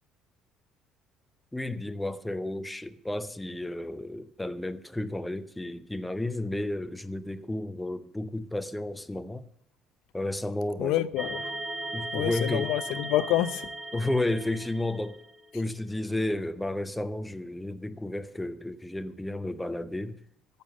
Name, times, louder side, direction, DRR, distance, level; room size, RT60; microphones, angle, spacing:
voice 1, 1.5-9.5 10.1-11.0 11.9-12.7 13.9-15.2 15.5-20.2, left 1 dB, 5° left, 0.6 m, -32 dB
voice 2, 10.8-11.5 12.1-13.7, left 14 dB, 80° left, 0.6 m, -27 dB
sound 1, 11.2-15.4, right 2 dB, 15° right, 1.1 m, -37 dB
13.5 x 6.8 x 7.5 m
cardioid pair, 150°, 0 cm